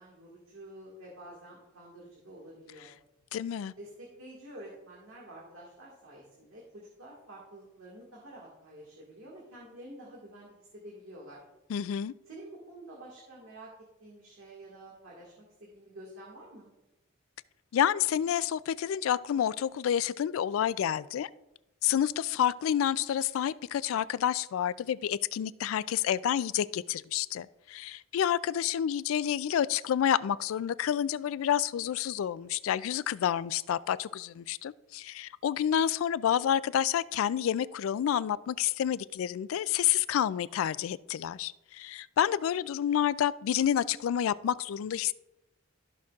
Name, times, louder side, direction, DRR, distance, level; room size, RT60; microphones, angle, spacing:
voice 1, 0.0-2.9 3.8-11.4 12.3-13.7 14.0-16.7, right 1 dB, 85° right, 1.8 m, -49 dB
voice 2, 3.3-3.7 11.7-12.1 17.7-21.3 21.8-45.1, left 9 dB, 80° left, 0.3 m, -29 dB
14.0 x 6.0 x 2.4 m
head